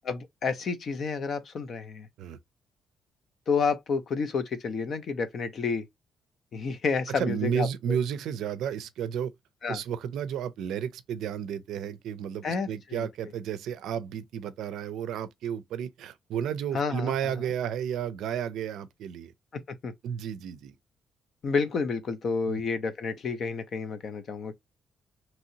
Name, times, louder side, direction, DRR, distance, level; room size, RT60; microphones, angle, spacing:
voice 1, 0.0-2.1 3.5-5.9 6.5-8.0 9.6-9.8 12.4-13.1 16.7-17.3 19.5-19.9 21.4-24.5, left 5 dB, 45° left, 0.6 m, -30 dB
voice 2, 7.1-9.3 9.7-19.3 20.0-20.7 22.5-22.6, right 8 dB, 80° right, 0.4 m, -32 dB
3.0 x 2.7 x 2.7 m
cardioid pair, 140°, 0 cm